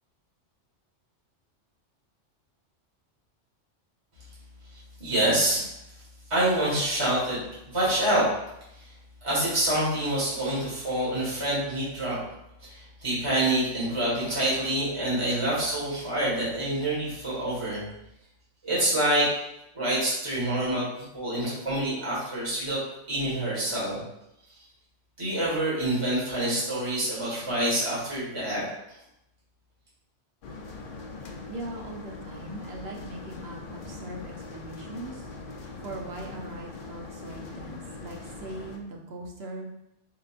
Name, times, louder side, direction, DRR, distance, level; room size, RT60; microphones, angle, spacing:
voice 1, 5.0-5.7 6.3-7.4 7.7-8.3 9.2-12.2 12.6-17.8 18.6-19.3 19.7-22.8 23.1-24.0 25.2-28.6, right 1 dB, 25° right, -8 dB, 1.7 m, -26 dB
sound 1, 30.4-38.8, left 3 dB, 55° left, 0.6 m, -41 dB
voice 2, 31.5-35.2 35.8-39.7, right 2 dB, 60° right, 1 dB, 1.0 m, -40 dB
4.6 x 3.9 x 2.5 m, 0.84 s
omnidirectional pair, 1.2 m